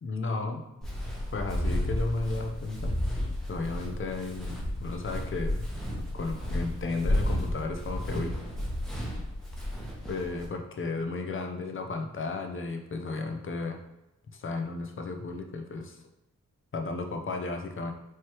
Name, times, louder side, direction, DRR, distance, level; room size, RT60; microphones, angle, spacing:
voice 1, 0.0-0.6 1.3-5.7 6.1-8.4 10.1-13.7 14.3-16.0 16.7-17.9, left 3 dB, 40° left, 4 dB, 0.6 m, -34 dB
Walk footsteps, 0.8-10.5, left 1 dB, ahead, 0.9 m, -32 dB
4.6 x 3.2 x 2.9 m, 0.91 s
wide cardioid pair, 130°, 31 cm